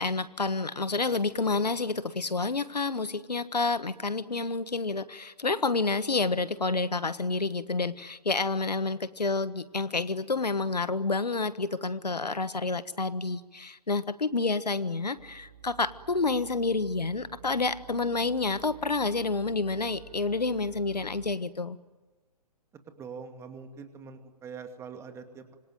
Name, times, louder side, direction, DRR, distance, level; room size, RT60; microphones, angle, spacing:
voice 1, 0.0-21.8, left 3 dB, 80° left, 15 dB, 1.4 m, -29 dB
sound 1, 15.2-21.4, right 7 dB, 30° right, 5.0 m, -51 dB
voice 2, 22.9-25.6, right 5 dB, 15° right, 7 dB, 2.5 m, -43 dB
26.5 x 24.5 x 9.2 m, 1.2 s
figure-of-eight pair, 125°, 21 cm